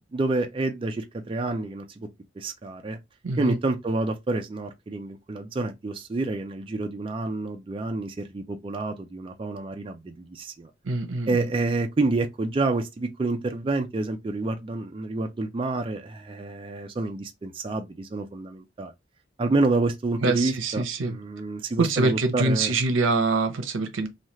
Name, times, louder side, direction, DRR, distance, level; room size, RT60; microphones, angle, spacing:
voice 1, 0.0-2.1 2.4-3.0 3.4-10.7 11.3-18.9 19.4-22.7, right 2 dB, 25° right, 0.3 m, -28 dB
voice 2, 3.2-3.6 10.8-11.5 20.2-21.2 21.8-24.1, right 3 dB, 85° right, 0.6 m, -25 dB
3.2 x 2.3 x 2.7 m
head